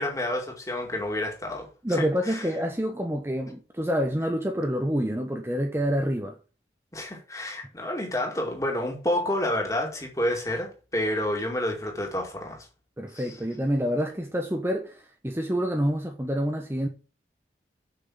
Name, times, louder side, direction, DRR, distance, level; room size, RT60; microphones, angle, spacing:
voice 1, 0.0-2.5 6.9-12.7 13.1-13.4, left 1 dB, 20° left, 2.4 m, -29 dB
voice 2, 1.8-6.4 13.0-16.9, equal, 15° right, 0.9 m, -27 dB
6.8 x 6.1 x 7.3 m
head